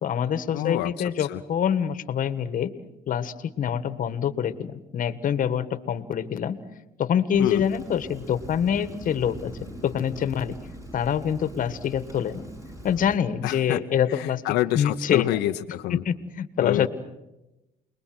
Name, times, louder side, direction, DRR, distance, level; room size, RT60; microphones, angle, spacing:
voice 1, 0.0-2.7 3.1-6.6 7.0-9.5 9.8-10.6 10.9-12.4 12.8-14.4 14.7-15.4 15.9-16.9, left 8 dB, 50° left, 13 dB, 1.7 m, -25 dB
voice 2, 0.5-0.9 1.3-1.4 7.4-7.6 13.4-13.8 14.2-16.0 16.6-16.9, left 15 dB, 90° left, 6 dB, 1.0 m, -27 dB
Rain, 7.3-13.2, right 1 dB, 20° right, 6.6 m, -42 dB
29.5 x 21.5 x 7.9 m, 0.95 s
cardioid pair, 110°, 17 cm